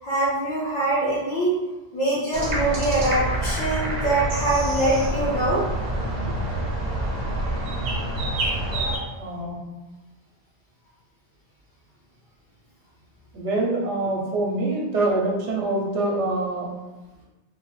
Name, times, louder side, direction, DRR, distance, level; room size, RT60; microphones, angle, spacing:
voice 1, 0.0-1.5 1.9-5.6 8.7-9.1, right 2 dB, 45° left, -11 dB, 0.8 m, -24 dB
sound 1, 2.3-9.0, right 1 dB, 50° right, 0.6 m, -27 dB
voice 2, 9.2-9.6 13.3-16.7, right 2 dB, 80° right, -2 dB, 0.9 m, -25 dB
3.0 x 2.1 x 3.0 m, 1.1 s
omnidirectional pair, 1.2 m